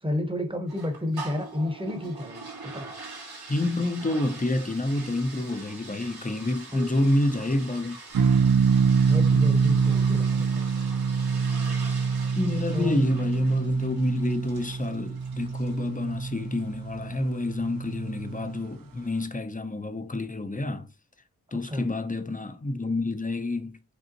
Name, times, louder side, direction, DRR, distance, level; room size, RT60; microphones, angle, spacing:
voice 1, 0.0-2.9 6.7-6.9 9.1-10.7 12.7-13.1 21.6-21.9, left 1 dB, 15° right, 1.1 m, -31 dB
sound 1, 0.7-15.9, right 3 dB, 80° right, 2.1 m, -43 dB
voice 2, 3.5-8.0 12.4-20.9 21.5-23.8, left 2 dB, 20° left, 0.7 m, -28 dB
sound 2, 8.1-18.7, right 6 dB, 65° right, 0.5 m, -25 dB
5.3 x 3.4 x 3.0 m
wide cardioid pair, 65°, 37 cm